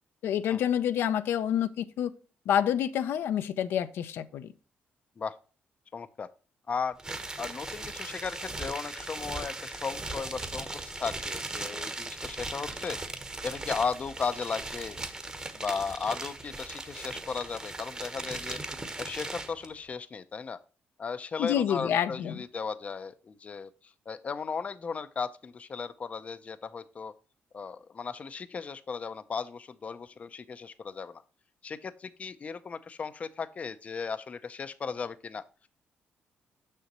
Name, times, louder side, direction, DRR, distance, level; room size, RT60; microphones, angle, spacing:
voice 1, 0.2-2.1 2.5-4.5 21.4-22.4, left 9 dB, 80° left, 11 dB, 0.5 m, -28 dB
voice 2, 5.9-6.3 6.7-7.0 7.4-10.7 11.0-13.0 13.4-15.0 15.5-18.6 19.0-20.6 21.0-27.1 27.5-31.2 31.6-35.4, left 5 dB, 35° left, 13 dB, 0.5 m, -36 dB
sound 1, 7.0-19.7, right 2 dB, 20° right, 1.0 m, -38 dB
6.6 x 6.3 x 2.9 m, 0.36 s
cardioid pair, 110°, 4 cm